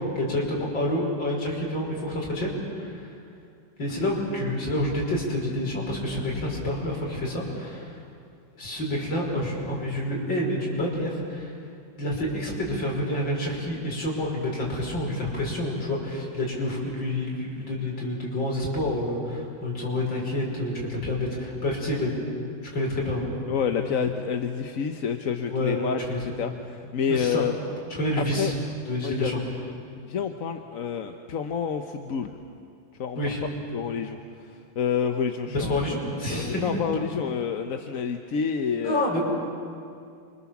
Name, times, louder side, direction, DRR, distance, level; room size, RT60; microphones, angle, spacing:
voice 1, 0.0-3.1 3.8-8.0 8.5-11.6 12.0-22.1 22.6-23.3 23.6-23.9 25.5-26.2 27.1-27.4 27.9-28.5 28.9-29.4 33.2-33.4 35.5-36.7 38.7-39.2, left 1 dB, 70° left, -2 dB, 6.1 m, -28 dB
voice 2, 23.5-26.0 26.4-27.5 28.4-28.5 29.0-29.3 30.0-32.4 33.0-33.2 33.7-34.2 34.5-35.7 36.4-39.2, left 7 dB, 50° left, 6 dB, 1.2 m, -28 dB
29.0 x 25.0 x 7.3 m, 2.4 s
omnidirectional pair, 2.1 m